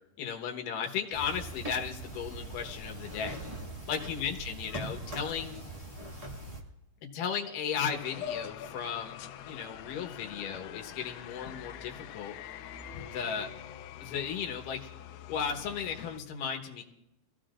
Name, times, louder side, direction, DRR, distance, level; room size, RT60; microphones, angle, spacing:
voice 1, 0.2-3.4 3.9-5.6 7.1-9.2 9.5-12.3 13.1-13.5 14.0-14.9 15.3-16.8, left 7 dB, 70° left, 2 dB, 2.8 m, -35 dB
sound 1, 1.1-6.6, right 1 dB, 20° right, 1.0 m, -41 dB
sound 2, 7.7-16.2, left 9 dB, 85° left, 2.4 m, -44 dB
24.0 x 16.0 x 2.5 m, 0.87 s
omnidirectional pair, 4.2 m